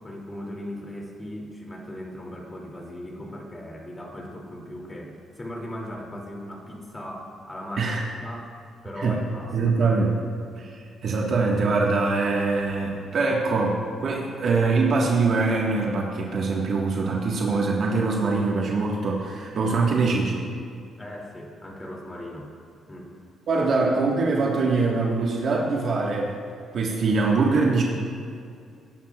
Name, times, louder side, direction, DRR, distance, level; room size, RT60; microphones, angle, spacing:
voice 1, 0.0-8.6 8.8-9.6 21.0-22.5 22.9-23.2 23.8-23.9, left 1 dB, 20° left, -1 dB, 2.7 m, -38 dB
voice 2, 9.5-10.1 10.5-20.4 23.5-26.3 26.7-27.8, right 3 dB, 60° right, -2 dB, 1.6 m, -23 dB
18.5 x 11.0 x 2.4 m, 2.3 s
cardioid pair, 90°, 0 cm